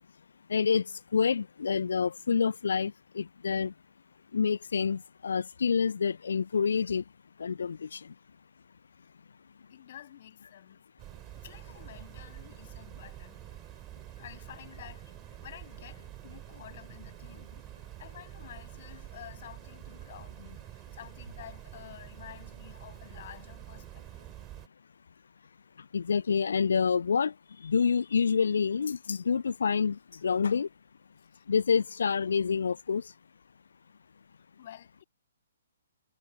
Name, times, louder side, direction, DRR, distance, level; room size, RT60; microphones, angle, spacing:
voice 1, 0.5-0.8 1.1-3.7 4.3-7.0 7.4-8.0 25.9-27.3 27.6-30.0 30.2-30.7 31.5-33.0, left 6 dB, 65° left, 0.4 m, -27 dB
voice 2, 9.7-10.8 11.3-13.4 14.2-17.7 18.0-24.3 31.2-31.5 34.4-35.1, left 11 dB, 45° left, 7.7 m, -50 dB
sound 1, 11.0-24.7, right 16 dB, 20° right, 4.5 m, -47 dB
figure-of-eight pair, 125°, 0 cm